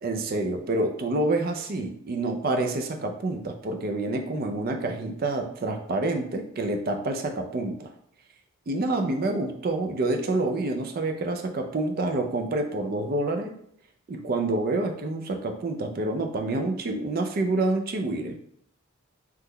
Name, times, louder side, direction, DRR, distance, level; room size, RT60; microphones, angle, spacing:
voice 1, 0.0-7.9 8.7-13.5 14.1-18.4, right 2 dB, 45° right, 4 dB, 0.4 m, -27 dB
3.0 x 2.2 x 3.6 m, 0.68 s
head